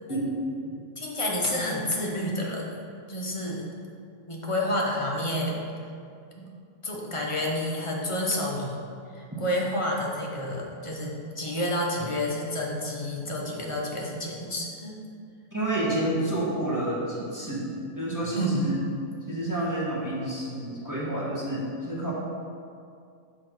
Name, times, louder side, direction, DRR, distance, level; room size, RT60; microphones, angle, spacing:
voice 1, 1.0-2.7 3.1-3.7 4.3-5.6 6.3-6.5 6.8-8.8 9.1-15.0 18.4-18.6, left 1 dB, 30° left, -2 dB, 0.7 m, -29 dB
voice 2, 15.5-18.8 19.2-22.1, right 1 dB, 15° right, -7 dB, 1.1 m, -29 dB
5.0 x 4.1 x 5.9 m, 2.4 s
omnidirectional pair, 1.5 m